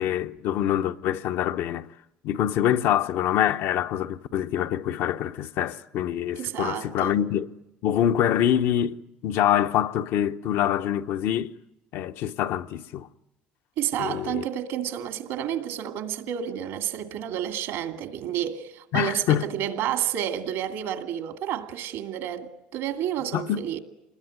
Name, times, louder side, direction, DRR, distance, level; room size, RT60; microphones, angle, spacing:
voice 1, 0.0-1.9 2.2-7.5 7.8-9.0 9.2-11.5 11.9-13.1 14.0-14.4 18.9-19.5 23.3-23.6, left 11 dB, 70° left, 0.9 m, -25 dB
voice 2, 6.4-7.2 13.8-23.8, right 10 dB, 75° right, 2.3 m, -30 dB
27.5 x 20.5 x 9.6 m
supercardioid pair, 85°, 4 cm